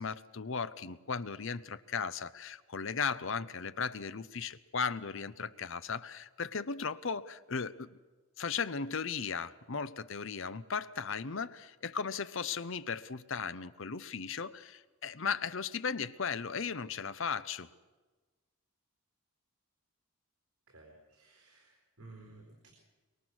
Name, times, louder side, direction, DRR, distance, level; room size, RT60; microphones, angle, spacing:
voice 1, 0.0-8.0 8.4-17.7, left 5 dB, 60° left, 14 dB, 0.7 m, -36 dB
voice 2, 20.7-22.7, right 2 dB, 85° right, 1 dB, 4.1 m, -55 dB
23.0 x 22.0 x 6.3 m, 1.3 s
head